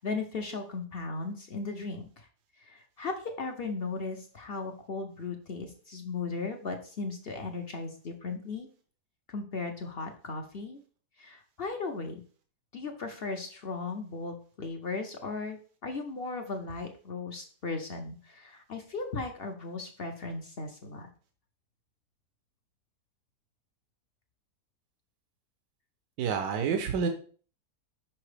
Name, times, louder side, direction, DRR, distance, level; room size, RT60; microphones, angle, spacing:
voice 1, 0.0-2.3 2.6-8.7 9.3-10.8 11.2-12.2 12.7-21.1, left 3 dB, 55° left, 4 dB, 0.7 m, -37 dB
voice 2, 26.2-27.1, right 6 dB, 85° right, 6 dB, 1.3 m, -28 dB
5.9 x 5.3 x 3.3 m, 0.41 s
omnidirectional pair, 1.8 m